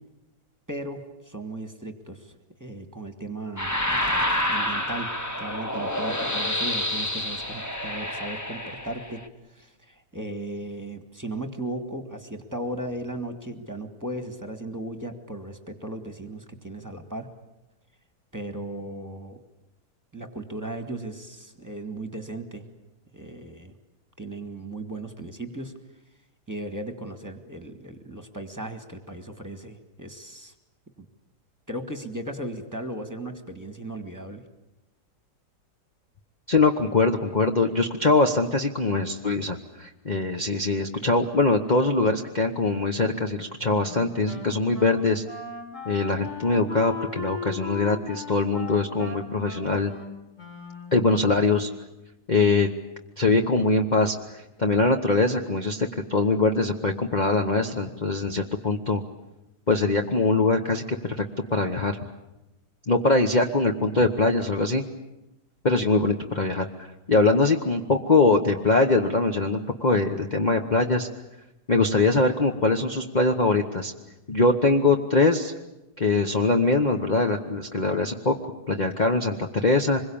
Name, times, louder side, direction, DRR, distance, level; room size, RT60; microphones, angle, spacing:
voice 1, 0.7-2.3 2.6-5.1 5.4-9.2 9.5-17.3 18.3-19.4 20.1-22.6 23.1-23.7 24.2-25.7 26.5-30.5 31.0-31.1 31.7-34.4, right 1 dB, 10° right, 7 dB, 2.0 m, -36 dB
sound 1, 3.6-9.2, left 1 dB, 10° left, 1.2 m, -28 dB
voice 2, 36.5-45.2 45.8-49.9 50.9-51.7 52.3-52.7 53.2-59.0 59.7-61.2 61.5-62.0 62.9-64.8 65.6-71.1 71.7-73.9 74.3-75.5 76.0-80.0, left 3 dB, 30° left, 3 dB, 1.1 m, -22 dB
Wind instrument woodwind instrument, 43.8-51.2, left 4 dB, 50° left, 4.5 m, -38 dB
25.5 x 22.5 x 8.7 m, 0.96 s
omnidirectional pair, 1.7 m